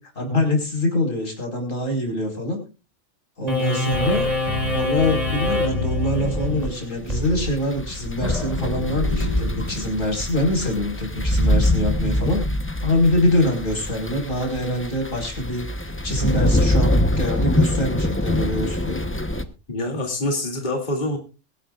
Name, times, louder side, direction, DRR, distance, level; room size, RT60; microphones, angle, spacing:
voice 1, 0.2-2.6 3.4-4.2 4.7-12.4 12.8-19.0, left 1 dB, 80° left, 2 dB, 5.3 m, -24 dB
sound 1, 3.5-10.2, left 2 dB, 30° right, 4.6 m, -26 dB
sound 2, 6.7-19.4, left 1 dB, 10° left, 0.9 m, -24 dB
voice 2, 19.7-21.2, left 1 dB, 35° left, 3 dB, 2.7 m, -25 dB
23.0 x 11.5 x 2.4 m, 0.32 s
omnidirectional pair, 1.3 m